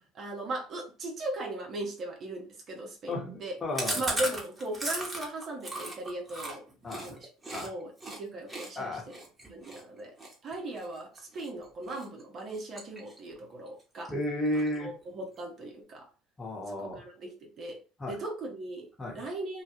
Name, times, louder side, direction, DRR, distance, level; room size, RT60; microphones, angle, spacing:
voice 1, 0.1-3.5 3.9-6.6 7.0-7.3 7.6-9.0 9.5-10.2 10.4-14.1 14.8-16.1 16.7-17.8 18.1-18.9 19.1-19.6, right 2 dB, 45° right, 1 dB, 0.8 m, -38 dB
voice 2, 3.1-4.0 6.8-7.2 7.5-7.7 8.8-9.0 14.1-14.9 16.4-17.0 18.0-18.2 19.0-19.2, left 1 dB, 20° left, -1 dB, 1.0 m, -33 dB
Chewing mastication, 3.7-7.7 8.0-8.2 8.5-11.5 11.9-12.2 12.5-13.4 13.7-13.8 14.0-14.1 14.4-15.0, right 1 dB, 15° right, 1.0 m, -37 dB
2.3 x 2.2 x 2.8 m, 0.35 s
hypercardioid pair, 70°, 0 cm